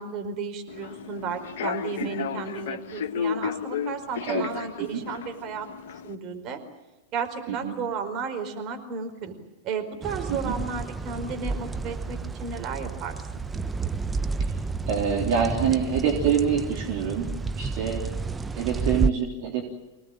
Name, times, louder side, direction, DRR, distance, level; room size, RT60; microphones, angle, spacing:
voice 1, 0.0-5.7 6.0-6.6 7.1-9.3 9.6-13.4, right 5 dB, 40° right, 5 dB, 4.7 m, -33 dB
Human voice / Subway metro underground, 0.7-6.1, left 7 dB, 60° left, 1.2 m, -33 dB
sound 1, 10.0-19.1, right 4 dB, 15° right, 0.8 m, -30 dB
voice 2, 14.9-18.1 18.5-19.6, right 7 dB, 55° right, 1 dB, 3.7 m, -26 dB
25.5 x 19.0 x 9.1 m, 1.1 s
figure-of-eight pair, 95°, 0 cm